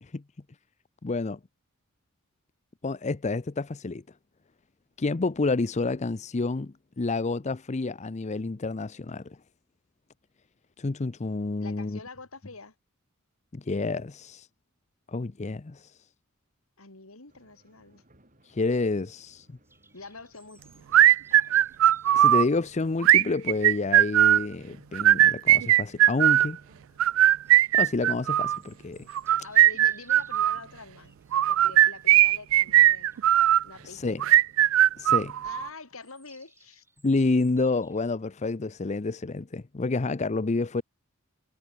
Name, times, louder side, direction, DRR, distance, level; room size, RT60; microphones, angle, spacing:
voice 1, 1.0-1.4 2.8-4.0 5.0-9.4 10.8-12.0 13.5-14.5 15.1-16.0 18.4-19.5 22.1-26.6 27.7-29.1 33.8-34.2 35.0-35.4 37.0-40.8, left 3 dB, 35° left, 0.6 m, -29 dB
voice 2, 11.6-12.8 16.8-18.0 19.9-20.9 21.4-21.9 29.4-31.2 31.5-33.2 33.6-34.4 35.4-36.8, left 3 dB, 85° left, 3.5 m, -46 dB
sound 1, 17.3-35.8, right 1 dB, 40° right, 7.8 m, -62 dB
sound 2, 19.6-38.1, right 3 dB, 10° right, 7.3 m, -63 dB
sound 3, 20.9-22.4 23.0-24.4 24.9-26.5 27.0-28.6 29.1-30.6 31.3-33.6 34.2-35.7, right 12 dB, 65° right, 0.3 m, -19 dB
head